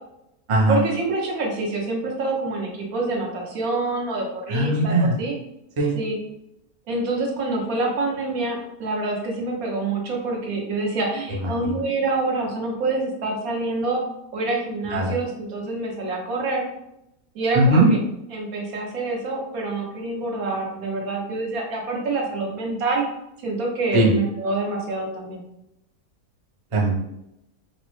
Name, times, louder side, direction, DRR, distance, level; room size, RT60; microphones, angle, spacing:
voice 1, 0.7-5.3 6.0-6.1 6.9-14.0 14.3-16.7 17.3-18.0 18.3-23.0 23.4-25.4, right 2 dB, 75° right, -1 dB, 1.2 m, -26 dB
voice 2, 4.5-5.2 5.8-5.9 11.4-11.8 14.9-15.1 17.5-17.9 23.9-24.1 26.7-26.9, right 2 dB, 45° right, -2 dB, 0.4 m, -19 dB
3.9 x 2.0 x 3.0 m, 0.83 s
omnidirectional pair, 1.6 m